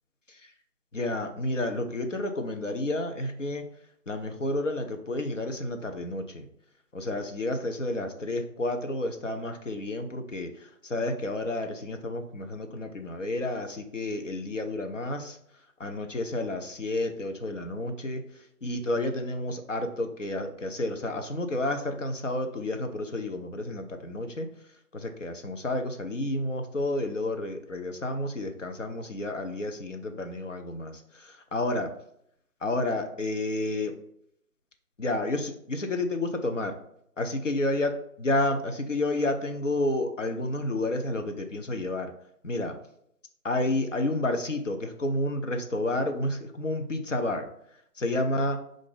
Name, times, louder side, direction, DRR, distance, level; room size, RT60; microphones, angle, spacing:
voice 1, 0.9-3.7 4.1-6.5 6.9-15.4 15.8-18.2 18.6-24.5 24.9-31.9 32.6-33.9 35.0-36.8 37.2-37.9 38.2-42.1 42.4-42.7 43.4-47.5 48.0-48.6, left 2 dB, 55° left, 6 dB, 0.6 m, -30 dB
5.0 x 2.5 x 3.7 m, 0.71 s
figure-of-eight pair, 180°, 46 cm